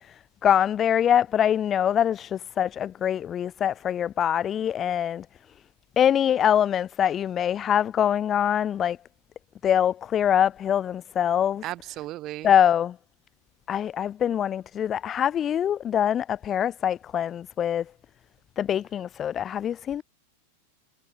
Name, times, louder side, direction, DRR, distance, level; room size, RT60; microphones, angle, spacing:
voice 1, 0.4-5.2 6.0-9.0 9.6-11.6 12.4-13.0 13.7-17.8 18.6-20.0, left 9 dB, 25° left, 4.8 m, -24 dB
voice 2, 11.6-12.5, right 16 dB, 35° right, 2.6 m, -35 dB
figure-of-eight pair, 90°, 0 cm